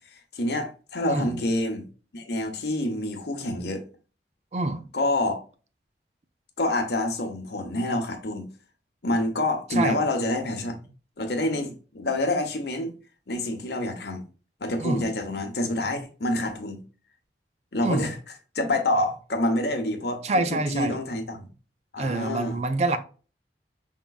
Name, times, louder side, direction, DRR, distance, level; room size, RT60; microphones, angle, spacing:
voice 1, 0.1-1.9 2.1-3.8 4.9-5.4 6.6-8.5 9.0-10.8 11.2-12.9 13.3-14.2 14.6-16.8 17.7-18.2 18.5-21.5 21.9-22.6, left 1 dB, 65° left, 0.9 m, -27 dB
voice 2, 4.5-4.8 9.8-10.0 14.8-15.1 17.8-18.1 20.2-21.0 22.0-23.0, right 2 dB, 35° right, 0.4 m, -26 dB
5.7 x 3.7 x 2.3 m
head